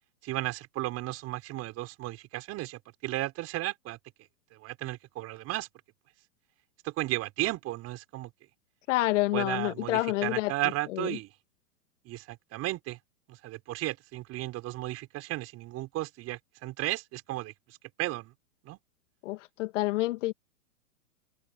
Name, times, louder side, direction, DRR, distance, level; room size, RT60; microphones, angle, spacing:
voice 1, 0.2-4.0 4.5-5.7 6.8-8.3 9.3-11.3 12.1-13.0 13.3-18.3 18.6-18.8, right 17 dB, 35° right, 5.2 m, -34 dB
voice 2, 8.9-10.5 10.9-11.2 19.2-20.3, left 19 dB, 55° left, 2.2 m, -28 dB
open air
hypercardioid pair, 125°, 45 cm